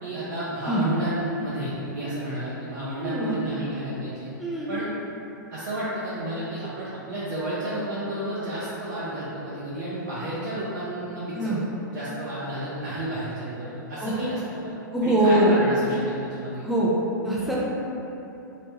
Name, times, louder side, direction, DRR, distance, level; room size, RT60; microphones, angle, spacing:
voice 1, 0.0-4.3 4.7-4.9 5.5-11.5 11.9-14.7 15.0-16.6, right 1 dB, 60° right, -9 dB, 0.6 m, -31 dB
voice 2, 3.0-3.4 4.4-4.7 11.4-11.6 14.0-14.1 14.9-15.6 16.6-16.9 17.2-17.7, right 1 dB, ahead, -7 dB, 0.4 m, -23 dB
3.0 x 2.1 x 2.8 m, 3.0 s
hypercardioid pair, 110°, 11 cm